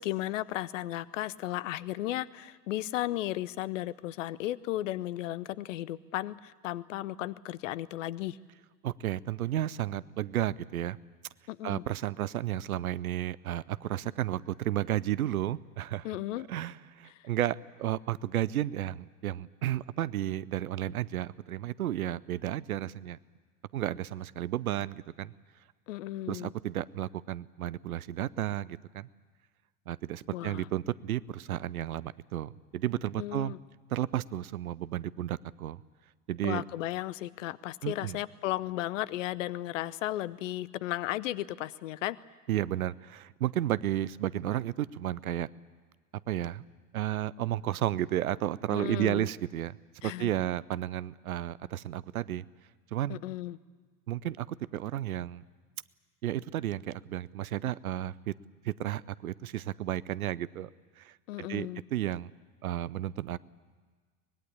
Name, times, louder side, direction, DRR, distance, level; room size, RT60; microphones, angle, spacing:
voice 1, 0.0-8.4 11.5-11.8 16.0-16.5 17.1-17.3 25.9-26.5 30.3-30.7 33.2-33.6 36.4-42.2 48.7-49.3 50.0-50.3 53.1-53.6 61.3-61.8, left 15 dB, 55° left, 19 dB, 0.8 m, -35 dB
voice 2, 8.8-11.0 11.6-16.1 16.5-23.2 23.7-25.3 26.3-29.1 29.9-33.5 33.9-35.8 36.3-36.6 37.8-38.2 42.5-45.5 46.3-46.6 46.9-49.8 50.0-52.4 52.9-53.2 54.1-55.4 56.2-58.3 58.6-60.7 61.0-61.1 61.4-62.3 62.6-63.4, right 13 dB, 70° right, 20 dB, 0.7 m, -32 dB
24.0 x 20.5 x 8.5 m, 1.5 s
figure-of-eight pair, 80°, 45 cm